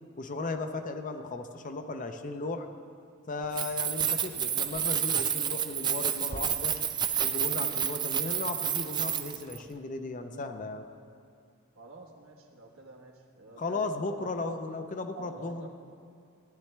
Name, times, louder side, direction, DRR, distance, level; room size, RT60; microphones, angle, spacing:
voice 1, 0.2-2.7 3.3-6.8 7.2-10.9 13.6-15.7, left 3 dB, 40° left, 7 dB, 0.6 m, -36 dB
Keys jangling, 3.4-9.6, right 9 dB, 20° right, 0.3 m, -30 dB
voice 2, 11.7-14.6 15.1-15.7, right 3 dB, 80° right, 1 dB, 1.2 m, -48 dB
15.0 x 10.0 x 3.3 m, 2.5 s
head